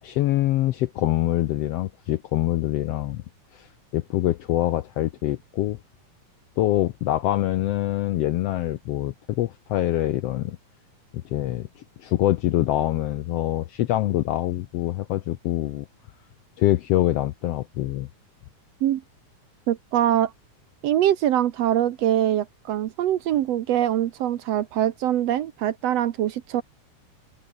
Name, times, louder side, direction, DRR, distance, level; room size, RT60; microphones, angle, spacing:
voice 1, 0.0-3.2 3.5-5.8 6.6-10.6 11.2-15.9 16.6-18.1, left 14 dB, 75° left, 1.5 m, -25 dB
voice 2, 19.7-20.3 20.8-26.6, right 11 dB, 65° right, 1.9 m, -23 dB
omnidirectional pair, 3.5 m